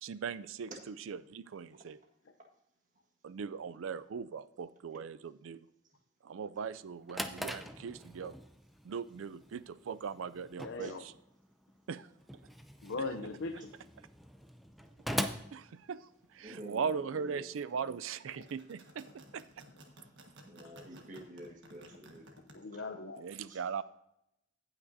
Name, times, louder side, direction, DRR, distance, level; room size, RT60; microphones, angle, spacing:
voice 1, 0.0-2.0 3.2-5.7 6.2-8.3 8.8-11.1 11.9-12.1 15.5-19.1 19.3-19.4 23.2-23.8, right 6 dB, 90° right, 15 dB, 0.4 m, -39 dB
Drawer open or close, 6.8-16.5, equal, ahead, 0.4 m, -43 dB
voice 2, 10.6-11.0 12.8-13.7 22.5-23.2, left 3 dB, 75° left, 4 dB, 0.6 m, -39 dB
voice 3, 16.4-17.4 20.5-22.2 22.7-22.8 23.5-23.6, right 1 dB, 40° right, 0 dB, 1.6 m, -48 dB
sound 1, 18.2-22.5, right 1 dB, 65° right, 1.6 m, -55 dB
17.0 x 5.9 x 2.7 m, 0.83 s
head